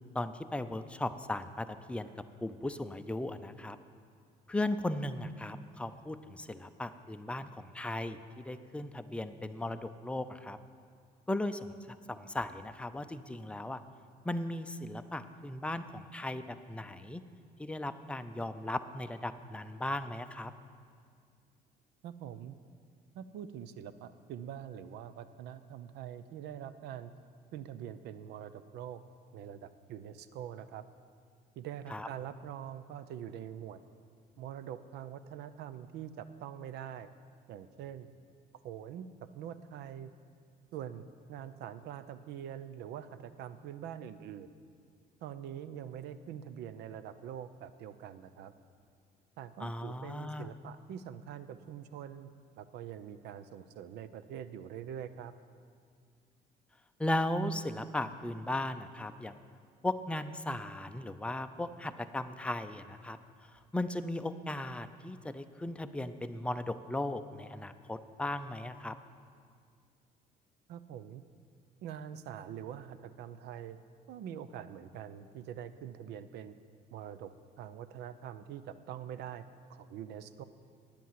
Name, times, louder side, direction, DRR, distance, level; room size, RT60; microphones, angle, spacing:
voice 1, 0.1-2.1 2.4-3.8 4.5-10.6 11.3-13.8 14.2-17.2 17.6-20.5 31.9-32.1 49.6-50.5 57.0-59.4 59.8-63.2 63.7-69.0, left 1 dB, 5° left, 9 dB, 0.5 m, -37 dB
voice 2, 22.0-22.6 23.1-27.1 27.5-29.0 29.3-30.8 31.6-33.8 34.4-37.1 37.5-38.1 38.6-39.1 39.3-40.1 40.7-41.0 41.3-44.5 45.2-48.5 49.4-52.3 52.6-55.3 70.7-71.2 71.8-73.8 74.1-76.5 76.9-77.3 77.6-79.4 79.7-80.4, right 9 dB, 80° right, 13 dB, 0.6 m, -44 dB
10.5 x 8.4 x 7.5 m, 2.1 s
cardioid pair, 110°, 17 cm